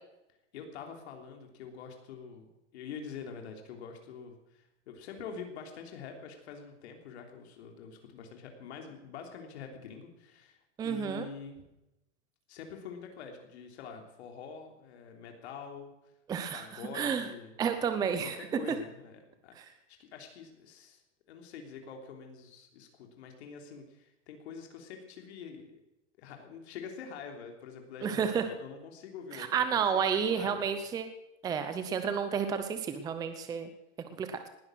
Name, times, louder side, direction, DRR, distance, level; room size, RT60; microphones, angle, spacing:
voice 1, 0.5-11.7 12.5-16.1 16.5-17.5 17.9-21.0 21.3-25.8 26.2-30.6, left 6 dB, 60° left, 3 dB, 3.4 m, -46 dB
voice 2, 10.8-11.3 16.3-16.7 16.9-17.3 17.6-18.4 19.6-19.7 28.0-28.4 29.3-31.1 31.4-33.7 34.2-34.4, right 7 dB, 10° right, 9 dB, 0.7 m, -31 dB
19.5 x 12.0 x 6.3 m, 0.91 s
supercardioid pair, 160°, 37 cm